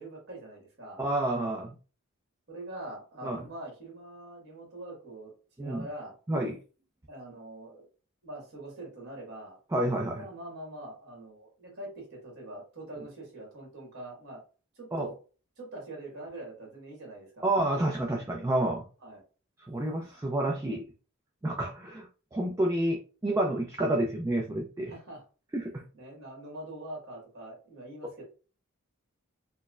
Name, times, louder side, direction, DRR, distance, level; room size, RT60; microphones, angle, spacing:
voice 1, 0.0-1.0 2.5-5.3 5.6-6.1 7.1-7.9 8.2-9.6 10.1-14.4 14.8-15.1 15.6-17.5 19.0-19.2 24.9-25.2 25.9-28.2, right 1 dB, 50° right, -2 dB, 1.6 m, -43 dB
voice 2, 1.0-1.7 3.2-3.4 5.6-5.9 6.3-6.6 9.7-10.2 14.9-15.1 17.4-18.8 19.7-20.8 21.4-24.9 25.5-25.8 28.0-28.1, right 1 dB, 15° right, 0 dB, 0.4 m, -29 dB
4.4 x 2.1 x 2.4 m, 0.36 s
head